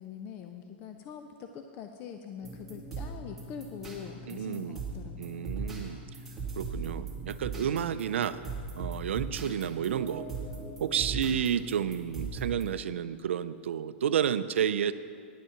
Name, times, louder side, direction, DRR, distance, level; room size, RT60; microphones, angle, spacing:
voice 1, 0.0-5.5, left 7 dB, 30° left, 6 dB, 0.5 m, -43 dB
sound 1, 2.4-12.6, right 3 dB, 5° right, 2.0 m, -39 dB
voice 2, 4.3-4.8 5.2-6.0 6.6-8.4 8.8-10.3 10.8-14.9, right 9 dB, 85° right, 13 dB, 0.5 m, -31 dB
10.0 x 8.2 x 5.8 m, 2.3 s
hypercardioid pair, 150°, 6 cm